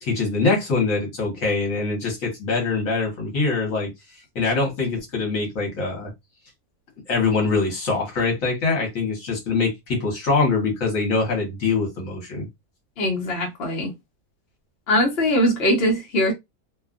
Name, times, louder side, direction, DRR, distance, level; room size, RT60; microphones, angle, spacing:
voice 1, 0.0-3.9 4.3-6.1 7.1-12.5, left 3 dB, 65° left, 1.5 m, -23 dB
voice 2, 13.0-13.9 14.9-16.3, equal, 50° left, 1.1 m, -21 dB
2.9 x 2.3 x 2.4 m
omnidirectional pair, 1.5 m